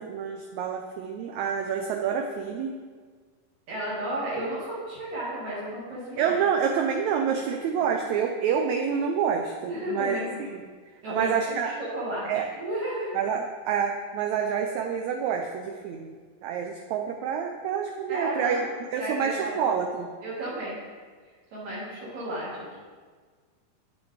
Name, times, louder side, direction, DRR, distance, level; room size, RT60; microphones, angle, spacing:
voice 1, 0.0-2.7 6.2-10.6 11.1-11.7 12.2-12.5 13.1-16.2 16.4-20.1, right 7 dB, 80° right, 3 dB, 1.7 m, -28 dB
voice 2, 3.7-6.4 7.8-7.9 9.6-10.5 11.0-12.3 12.5-13.1 18.1-18.7 19.0-19.6 20.2-20.8 21.5-22.8, right 1 dB, 60° right, -7 dB, 2.8 m, -33 dB
8.5 x 8.3 x 3.2 m, 1.6 s
omnidirectional pair, 3.8 m